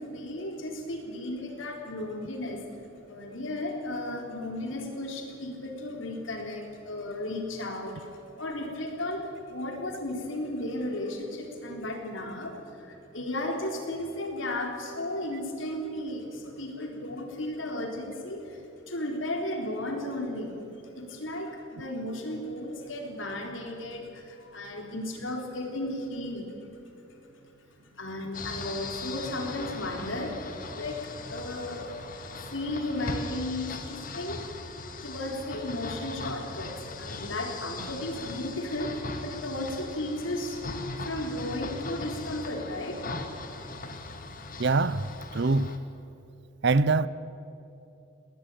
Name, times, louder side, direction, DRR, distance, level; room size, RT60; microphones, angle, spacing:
voice 1, 0.0-2.7 3.1-20.6 20.8-26.7 27.8-34.6 35.0-40.6 41.0-43.0, left 1 dB, 65° left, 3.8 m, -35 dB
sound 1, 28.3-45.8, left 3 dB, 40° left, 1.7 m, -39 dB
voice 2, 44.6-45.8 46.6-47.1, right 3 dB, 55° right, 0.6 m, -24 dB
19.5 x 19.0 x 9.2 m
head